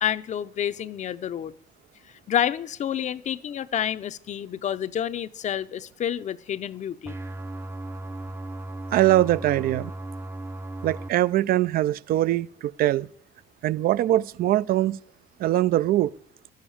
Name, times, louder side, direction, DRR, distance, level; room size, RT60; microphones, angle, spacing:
voice 1, 0.0-1.5 2.3-7.1, left 10 dB, 45° left, 0.6 m, -29 dB
sound 1, 7.1-11.1, right 2 dB, 15° right, 0.6 m, -36 dB
voice 2, 8.9-9.9 10.8-13.1 13.6-15.0 15.4-16.1, right 14 dB, 60° right, 0.4 m, -22 dB
12.0 x 7.3 x 8.6 m
cardioid pair, 110°, 17 cm